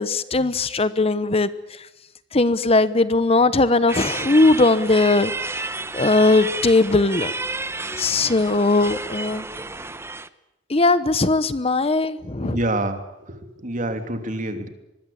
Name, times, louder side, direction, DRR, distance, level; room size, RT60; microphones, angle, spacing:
voice 1, 0.0-1.9 2.3-5.7 5.9-7.3 8.0-9.5 10.7-12.6, left 2 dB, 30° left, 14 dB, 1.0 m, -19 dB
sound 1, 3.9-10.3, right 3 dB, 15° right, 1.0 m, -31 dB
voice 2, 12.4-14.7, right 1 dB, 45° right, 7 dB, 3.0 m, -27 dB
25.0 x 21.0 x 8.8 m, 0.93 s
head